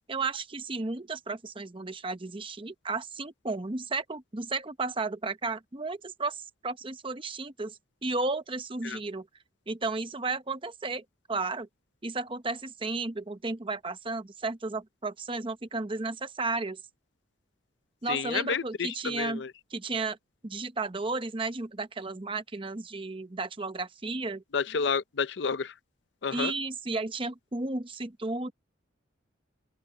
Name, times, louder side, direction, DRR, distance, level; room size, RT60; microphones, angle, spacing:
voice 1, 0.1-9.3 9.7-11.7 12.0-16.8 18.0-19.4 19.7-20.2 20.4-24.4 26.3-28.5, right 3 dB, 25° right, 0.8 m, -33 dB
voice 2, 18.1-19.5 24.5-25.7 26.2-26.5, left 5 dB, 60° left, 0.6 m, -30 dB
open air
head